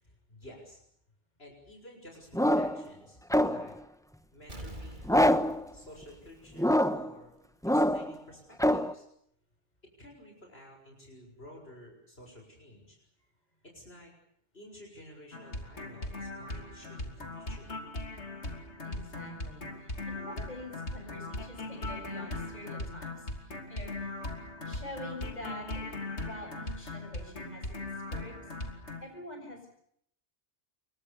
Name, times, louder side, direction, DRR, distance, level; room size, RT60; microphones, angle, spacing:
voice 1, 0.0-0.8 1.4-3.2 3.4-3.8 4.3-5.2 5.7-7.4 7.7-9.0 10.0-13.0 13.6-14.1 14.5-17.7, left 1 dB, 60° left, 1 dB, 6.7 m, -52 dB
Pitt Bull Dog Bark, 2.3-2.9 3.3-3.8 5.1-5.6 6.6-7.1 7.6-8.2 8.6-8.9, equal, 5° left, 1.0 m, -25 dB
Explosion, 4.5-7.1 7.4-7.5, right 1 dB, 45° right, 2.8 m, -47 dB
sound 1, 15.3-29.0, left 2 dB, 80° left, 3.4 m, -39 dB
voice 2, 18.8-24.1 24.6-25.8 26.2-27.8 28.1-28.4 29.0-29.8, left 1 dB, 40° left, 3 dB, 7.3 m, -45 dB
28.5 x 24.0 x 6.9 m, 0.69 s
omnidirectional pair, 1.2 m